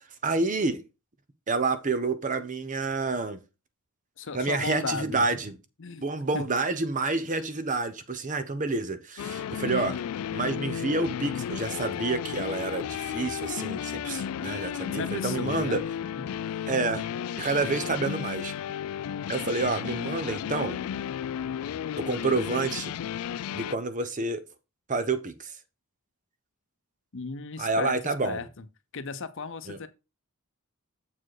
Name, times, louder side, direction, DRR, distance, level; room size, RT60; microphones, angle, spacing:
voice 1, 0.2-0.8 1.5-3.4 4.3-5.5 6.0-10.0 10.3-15.8 16.7-17.0 17.4-18.5 19.3-20.8 22.0-22.9 23.5-24.4 24.9-25.6 27.6-28.4 29.7-29.8, right 3 dB, 35° right, 0.8 m, -28 dB
voice 2, 4.2-5.3 5.8-6.1 6.3-6.5 14.9-15.8 16.2-16.7 27.1-28.7 28.9-29.9, left 4 dB, 60° left, 0.7 m, -35 dB
sound 1, 9.2-23.8, left 9 dB, 75° left, 0.3 m, -33 dB
7.5 x 4.4 x 4.8 m
head